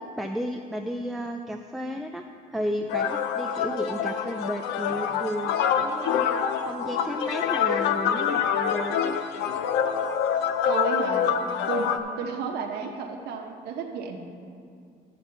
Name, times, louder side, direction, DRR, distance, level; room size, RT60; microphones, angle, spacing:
voice 1, 0.2-2.2 2.5-9.0, equal, ahead, 3 dB, 0.4 m, -33 dB
sound 1, 2.9-12.0, left 8 dB, 85° left, 0.6 m, -26 dB
voice 2, 10.6-11.4 11.7-11.9 12.2-14.2, right 5 dB, 75° right, 1 dB, 0.9 m, -32 dB
12.0 x 4.2 x 6.8 m, 2.3 s
cardioid pair, 110°, 17 cm